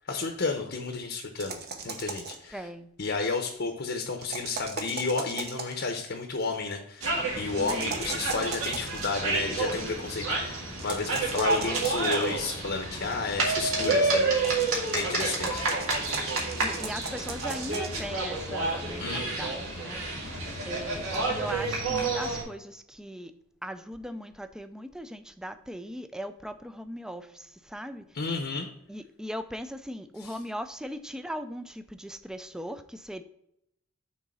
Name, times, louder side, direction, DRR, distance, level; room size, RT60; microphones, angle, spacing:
voice 1, 0.1-1.6 1.8-2.7 3.0-14.6 14.9-15.6 19.0-19.5 28.1-28.7 30.2-30.4, left 4 dB, 55° left, 4 dB, 0.8 m, -32 dB
sound 1, 1.4-2.5 4.2-5.8 7.6-9.0 10.8-12.4 14.3-18.0, right 4 dB, 50° right, 0.9 m, -38 dB
voice 2, 2.5-2.9 7.6-7.8 16.6-20.0 20.7-23.3 23.6-27.2 27.7-28.0 28.9-33.2, equal, 5° right, 10 dB, 0.3 m, -39 dB
sound 2, 7.0-22.4, right 3 dB, 85° right, 2.1 m, -29 dB
6.3 x 3.9 x 5.4 m, 0.77 s
head